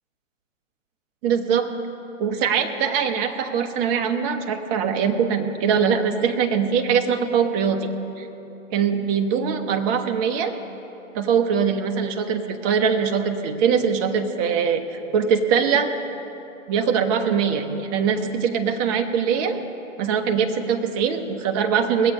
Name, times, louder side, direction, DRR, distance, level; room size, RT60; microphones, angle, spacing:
voice 1, 1.2-1.7 2.2-7.9 8.2-8.3 8.7-10.5 11.1-15.9 16.7-19.6 20.0-22.1, right 6 dB, 25° right, 5 dB, 0.9 m, -22 dB
20.5 x 8.2 x 5.4 m, 3.0 s
hypercardioid pair, 130°, 41 cm